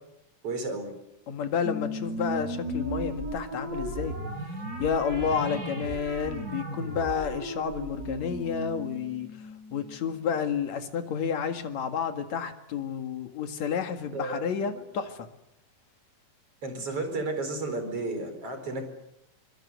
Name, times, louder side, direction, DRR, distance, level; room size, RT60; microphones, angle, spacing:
voice 1, 0.4-0.9 14.1-14.8 16.6-18.9, right 2 dB, 45° right, 7 dB, 5.5 m, -33 dB
voice 2, 1.3-4.2 4.8-9.3 9.7-15.3, left 7 dB, 60° left, 7 dB, 3.0 m, -30 dB
sound 1, 1.6-10.4, right 1 dB, 25° right, 6.7 m, -36 dB
24.5 x 24.5 x 8.2 m, 0.82 s
omnidirectional pair, 3.9 m